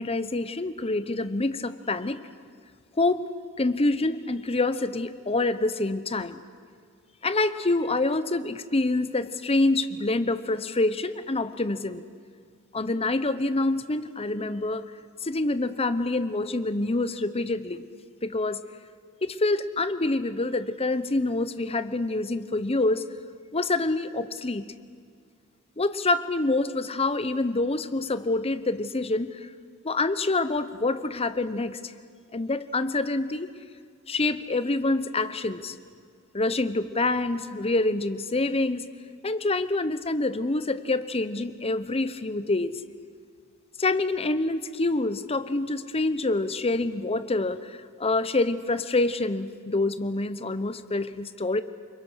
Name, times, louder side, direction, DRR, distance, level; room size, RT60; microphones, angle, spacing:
voice 1, 0.0-2.2 3.0-3.2 3.6-6.4 7.2-12.0 12.7-14.8 15.2-17.8 18.2-18.6 19.2-23.1 23.5-24.7 25.8-29.3 29.8-31.9 32.3-33.5 34.1-35.7 36.3-38.8 39.2-42.7 43.8-51.6, left 2 dB, 25° left, 12 dB, 0.9 m, -26 dB
29.5 x 22.0 x 6.4 m, 2.1 s
head